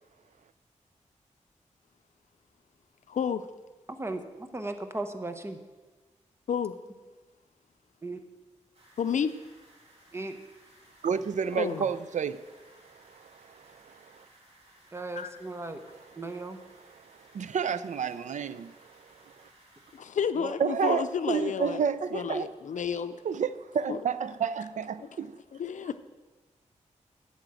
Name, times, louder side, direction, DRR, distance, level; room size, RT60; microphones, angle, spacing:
voice 1, 3.1-3.5 6.5-6.8 9.0-9.3 11.5-11.8 15.2-15.3 19.9-21.8 22.1-23.2 23.9-24.0 25.6-26.0, left 7 dB, 75° left, 0.5 m, -30 dB
voice 2, 3.9-5.6 8.0-8.2 10.1-10.4 14.9-15.8 16.2-16.6 20.3-20.5, right 2 dB, 20° right, 0.9 m, -36 dB
sound 1, 8.7-20.0, right 1 dB, 50° right, 2.6 m, -59 dB
voice 3, 11.0-12.4 13.0-14.3 17.3-19.5 20.6-22.5 23.2-25.4, right 7 dB, 75° right, 0.5 m, -31 dB
8.9 x 7.1 x 7.7 m
wide cardioid pair, 95°, 13 cm